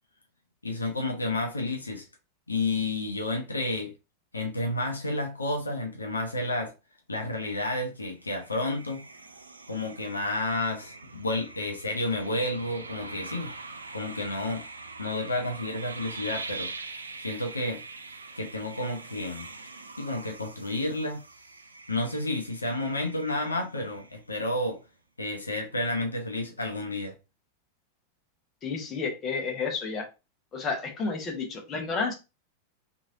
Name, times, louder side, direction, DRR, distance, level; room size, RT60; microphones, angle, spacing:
voice 1, 0.6-2.1 2.5-3.9 4.3-6.7 7.1-9.1 9.7-13.5 13.9-14.6 15.0-16.7 17.2-17.8 18.4-19.5 20.0-21.2 21.9-24.8 25.2-27.1, left 2 dB, 80° left, 0.6 m, -31 dB
sound 1, 8.2-24.5, right 3 dB, 75° right, 0.3 m, -43 dB
voice 2, 28.6-30.1 30.5-32.1, left 4 dB, 25° left, 0.9 m, -31 dB
3.1 x 2.6 x 2.5 m
figure-of-eight pair, 90°, 0 cm